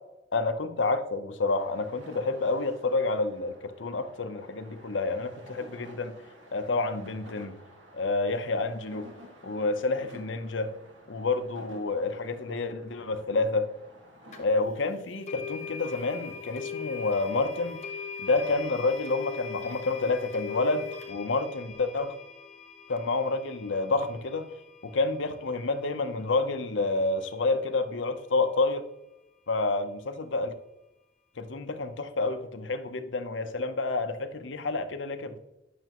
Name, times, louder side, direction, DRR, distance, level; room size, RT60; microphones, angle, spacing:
voice 1, 0.3-6.1 6.5-7.6 7.9-9.1 9.4-10.7 11.1-13.7 14.4-17.8 18.2-22.1 22.9-24.5 24.8-28.9 29.5-30.6 31.4-35.4, left 3 dB, 85° left, 0.8 m, -29 dB
sound 1, 1.5-14.5, equal, 85° right, 1.7 m, -52 dB
sound 2, 14.3-14.4 15.3-26.2, left 6 dB, 35° left, 1.2 m, -41 dB
11.5 x 6.7 x 3.0 m
head